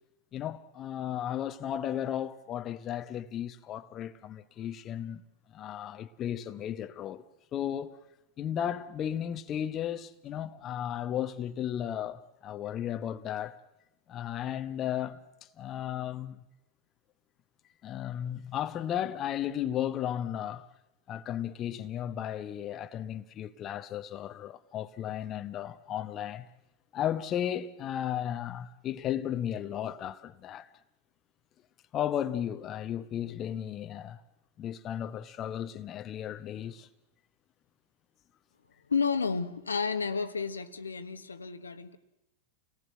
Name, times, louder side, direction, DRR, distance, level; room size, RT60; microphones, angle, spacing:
voice 1, 0.3-5.2 5.5-7.2 7.5-8.0 8.4-13.6 14.1-15.2 15.6-16.4 17.8-20.7 21.1-26.5 26.9-30.7 31.9-34.2 34.6-36.9, left 10 dB, 30° left, 0.9 m, -34 dB
voice 2, 38.9-42.0, left 5 dB, 75° left, 1.1 m, -31 dB
29.5 x 18.5 x 7.6 m
figure-of-eight pair, 90°, 0 cm